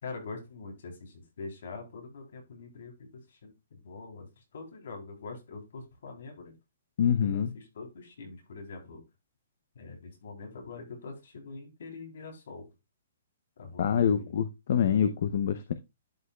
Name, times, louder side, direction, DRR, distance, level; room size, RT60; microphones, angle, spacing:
voice 1, 0.0-6.5 7.2-9.0 9.7-12.7 13.6-14.4, left 4 dB, 65° left, 3.4 m, -44 dB
voice 2, 7.0-7.5 13.8-15.7, left 8 dB, 50° left, 0.6 m, -26 dB
11.5 x 5.4 x 2.3 m
hypercardioid pair, 170°, 0 cm